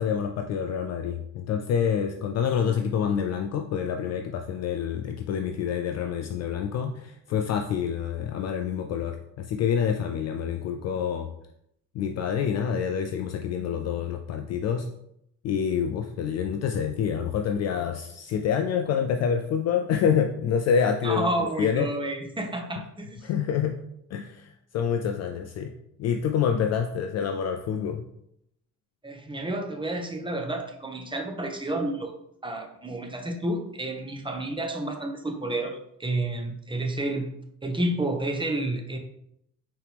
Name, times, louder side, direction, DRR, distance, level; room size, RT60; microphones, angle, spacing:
voice 1, 0.0-11.3 11.9-14.9 15.4-21.9 23.2-23.8 24.1-25.7 26.0-28.1, left 7 dB, 40° left, 5 dB, 0.4 m, -27 dB
voice 2, 21.0-23.3 29.0-32.1 32.4-37.3 37.6-39.0, right 1 dB, 10° right, 3 dB, 0.8 m, -30 dB
4.6 x 3.2 x 3.4 m, 0.76 s
figure-of-eight pair, 50°, 46 cm